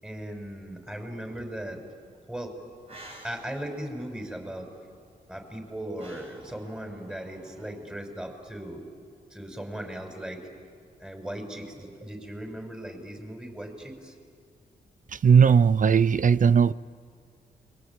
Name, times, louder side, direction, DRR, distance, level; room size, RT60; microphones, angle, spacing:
voice 1, 0.0-1.8 2.3-2.5 3.2-4.7 5.3-8.8 9.3-10.5 11.0-14.2, right 1 dB, 5° right, 6.3 m, -38 dB
sound 1, 2.7-7.7, right 1 dB, 35° right, 7.5 m, -51 dB
voice 2, 15.1-16.7, right 6 dB, 50° right, 0.6 m, -18 dB
29.5 x 22.5 x 8.9 m
supercardioid pair, 55°, 17 cm